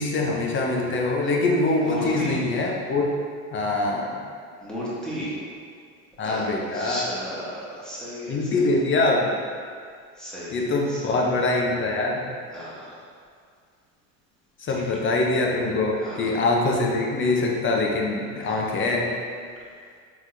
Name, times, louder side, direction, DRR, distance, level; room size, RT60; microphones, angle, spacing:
voice 1, 0.0-3.2 3.5-4.3 6.2-7.0 8.3-9.4 10.5-12.2 14.6-19.1, left 2 dB, 25° left, 0 dB, 0.7 m, -24 dB
voice 2, 1.8-2.4 4.6-5.3 6.2-6.5 6.7-8.8 10.1-11.3 12.5-13.0 14.7-15.1 16.0-16.3 18.4-18.9, left 1 dB, ahead, -9 dB, 1.5 m, -34 dB
4.6 x 3.8 x 2.7 m, 2.1 s
hypercardioid pair, 90°, 44 cm